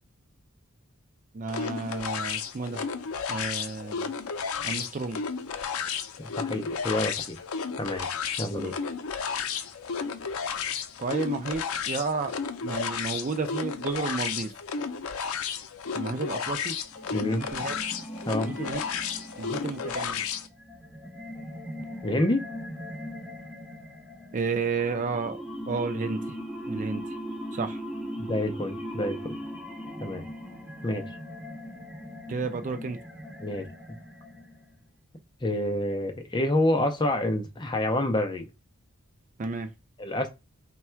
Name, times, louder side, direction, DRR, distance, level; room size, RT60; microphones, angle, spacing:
voice 1, 1.3-2.8 3.3-4.1 4.6-5.2 8.5-8.7 11.0-12.3 12.6-14.5 15.9-16.7 17.2-17.8 18.4-18.8 19.4-20.2 24.3-26.4 26.7-27.0 27.5-27.8 32.3-33.0 39.4-39.7, right 4 dB, 35° right, 0.4 m, -32 dB
sound 1, 1.5-20.5, left 6 dB, 75° left, 0.5 m, -33 dB
voice 2, 6.4-7.4 7.8-8.1 8.4-8.7 17.1-17.4 18.3-18.5 22.0-22.4 28.2-29.3 30.0-30.2 30.8-31.0 33.4-33.7 35.4-38.5 40.0-40.3, left 1 dB, 20° left, 0.5 m, -27 dB
sound 2, 16.9-34.8, equal, 5° right, 1.6 m, -39 dB
3.4 x 2.2 x 4.3 m
head